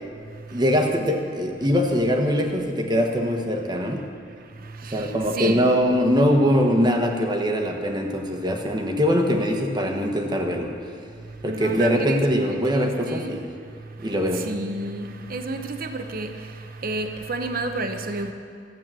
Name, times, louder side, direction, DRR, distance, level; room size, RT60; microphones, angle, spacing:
voice 1, 0.5-4.0 4.9-10.7 11.4-13.5 14.0-14.4, equal, 25° right, 1.3 m, -22 dB
voice 2, 4.6-5.7 11.4-13.4 14.2-16.5 16.8-18.3, right 2 dB, 50° right, 0.9 m, -30 dB
14.0 x 8.5 x 7.6 m
head